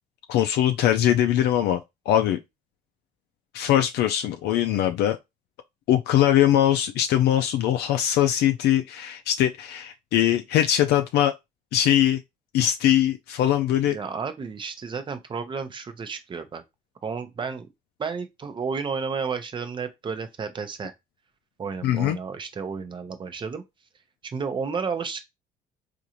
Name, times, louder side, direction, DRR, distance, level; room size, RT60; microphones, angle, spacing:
voice 1, 0.3-1.8 2.1-2.4 3.5-5.2 5.9-11.3 11.7-12.2 12.5-14.0 21.8-22.2, left 11 dB, 75° left, 0.4 m, -21 dB
voice 2, 13.8-16.6 17.0-17.7 18.0-20.9 21.6-23.6 24.2-25.2, right 5 dB, 30° right, 0.6 m, -32 dB
3.8 x 2.5 x 2.9 m
cardioid pair, 110°, 17 cm